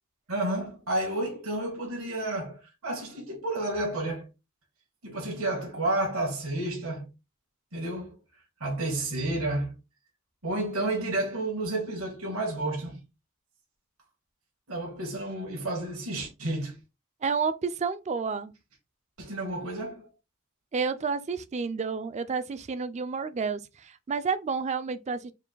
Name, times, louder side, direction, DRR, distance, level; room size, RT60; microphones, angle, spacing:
voice 1, 0.3-4.3 5.0-7.1 7.7-8.1 8.6-9.8 10.4-13.0 14.7-16.8 19.2-20.1, right 2 dB, 75° right, 1.6 m, -31 dB
voice 2, 17.2-18.5 20.7-25.3, right 5 dB, 30° right, 0.4 m, -30 dB
4.6 x 2.5 x 3.8 m
head